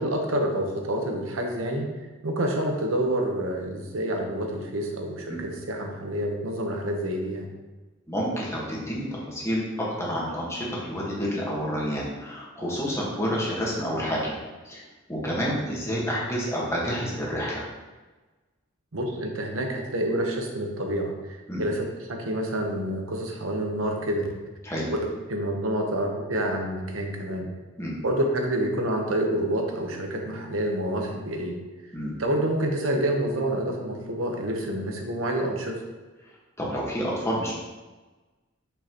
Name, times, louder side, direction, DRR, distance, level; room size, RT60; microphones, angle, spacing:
voice 1, 0.0-1.9 2.2-7.5 18.9-24.3 25.3-27.5 28.0-31.6 32.2-35.8, right 1 dB, 85° right, 2 dB, 1.0 m, -28 dB
voice 2, 8.1-14.3 14.6-14.8 15.1-17.6 21.5-21.6 24.6-24.9 27.8-28.0 31.9-32.2 36.6-37.6, equal, 15° left, -5 dB, 1.5 m, -29 dB
6.4 x 5.7 x 3.0 m, 1.2 s
head